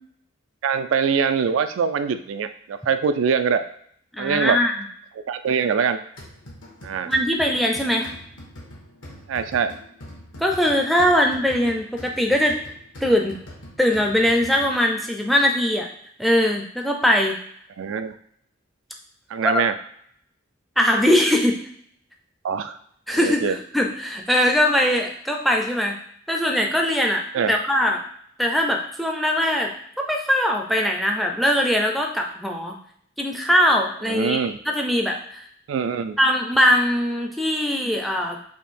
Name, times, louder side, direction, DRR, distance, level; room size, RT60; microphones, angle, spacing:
voice 1, 0.6-3.6 4.2-4.6 5.3-6.0 6.8-7.1 9.3-9.7 17.8-18.1 19.3-19.7 22.4-22.8 23.2-23.6 27.3-27.6 34.1-34.6 35.7-36.2, right 6 dB, 80° right, 10 dB, 0.3 m, -23 dB
voice 2, 4.1-4.7 7.1-8.1 10.4-12.6 13.0-13.4 13.8-15.9 16.2-17.4 19.4-19.5 20.8-21.6 23.1-26.0 26.3-27.2 27.5-28.0 28.4-29.7 30.0-32.8 33.2-34.4 34.7-35.4 36.2-38.4, equal, ahead, 1 dB, 0.4 m, -21 dB
sound 1, 6.2-15.1, equal, 70° left, 1.1 m, -43 dB
3.6 x 2.7 x 4.2 m, 0.64 s
head